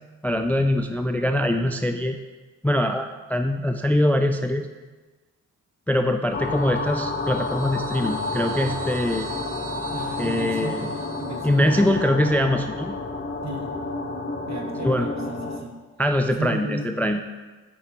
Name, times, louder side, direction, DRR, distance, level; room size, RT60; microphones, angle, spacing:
voice 1, 0.2-2.2 2.6-4.7 5.9-9.3 10.2-10.9 11.4-13.0 14.8-15.1 16.0-17.2, left 1 dB, 5° left, 6 dB, 0.4 m, -23 dB
sound 1, 6.3-15.6, left 3 dB, 30° left, 1.0 m, -30 dB
sound 2, 6.5-12.0, right 8 dB, 65° right, 0.5 m, -43 dB
voice 2, 9.9-11.7 13.4-13.8 14.5-15.8 16.4-17.1, right 2 dB, 50° right, 4 dB, 1.2 m, -34 dB
8.3 x 5.4 x 3.0 m, 1.3 s
supercardioid pair, 55°, 35 cm